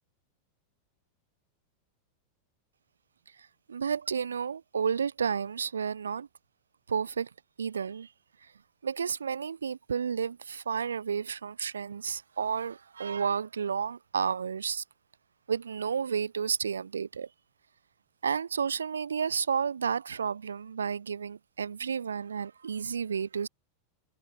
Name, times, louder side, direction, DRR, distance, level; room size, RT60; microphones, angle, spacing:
voice 1, 3.7-6.3 6.9-7.3 7.6-8.1 8.8-14.8 15.5-17.3 18.2-23.5, right 6 dB, 70° right, 4.3 m, -31 dB
figure-of-eight pair, 90°, 0 cm